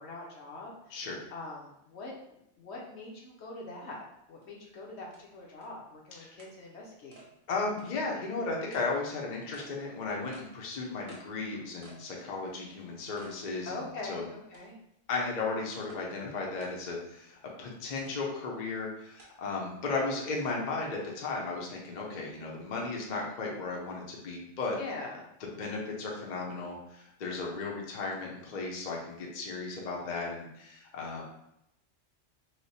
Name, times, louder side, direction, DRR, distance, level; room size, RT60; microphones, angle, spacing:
voice 1, 0.0-1.0 1.3-7.3 13.7-14.8 24.8-25.2, left 2 dB, 65° left, -2 dB, 0.9 m, -43 dB
sound 1, 4.4-4.5 5.1-5.2 5.6-5.7 6.4-6.5 7.1-7.3 7.8-7.9 8.7-8.9 9.5-9.7 10.3-10.5 11.1-11.3 11.8-12.1 12.5-12.6 13.2-13.4 13.8-13.9 14.5-14.9 15.9-16.0 16.6-16.8 18.0-18.1 19.2-19.3, right 3 dB, 50° right, 0.9 m, -53 dB
voice 2, 7.5-13.8 14.1-14.2 15.1-24.8 25.6-31.2, left 3 dB, 45° left, -2 dB, 0.7 m, -35 dB
3.2 x 2.1 x 4.1 m, 0.80 s
omnidirectional pair, 1.3 m